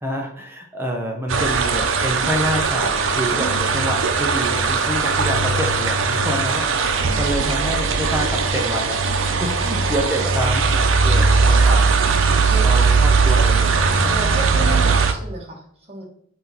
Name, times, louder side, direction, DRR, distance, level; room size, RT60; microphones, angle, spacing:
voice 1, 0.0-9.0 9.4-14.1 14.6-14.8, right 1 dB, 10° right, 1 dB, 0.8 m, -27 dB
sound 1, 1.3-15.1, right 4 dB, 80° right, 0.7 m, -19 dB
voice 2, 9.3-9.9 12.4-12.6 13.8-16.0, right 2 dB, 30° right, -2 dB, 1.6 m, -33 dB
6.0 x 2.9 x 5.4 m, 0.63 s
head